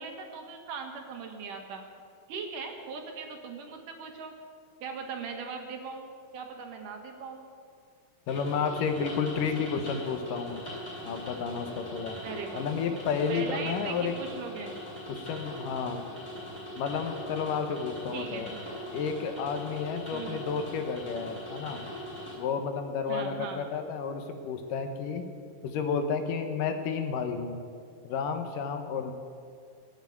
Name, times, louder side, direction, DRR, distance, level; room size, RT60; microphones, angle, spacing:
voice 1, 0.0-1.8 2.3-4.3 4.8-7.5 9.6-9.9 12.2-12.9 13.3-14.7 18.1-18.8 20.1-20.4 23.1-23.7, right 5 dB, 70° right, 4 dB, 3.0 m, -40 dB
voice 2, 8.3-10.6 11.0-12.2 12.5-14.2 15.1-16.0 16.8-18.5 18.9-21.8 22.4-25.2 25.6-27.6 28.0-29.1, left 6 dB, 75° left, 6 dB, 2.6 m, -31 dB
sound 1, 8.3-22.3, left 1 dB, 20° left, 6.0 m, -41 dB
18.5 x 8.2 x 9.4 m, 2.2 s
omnidirectional pair, 4.0 m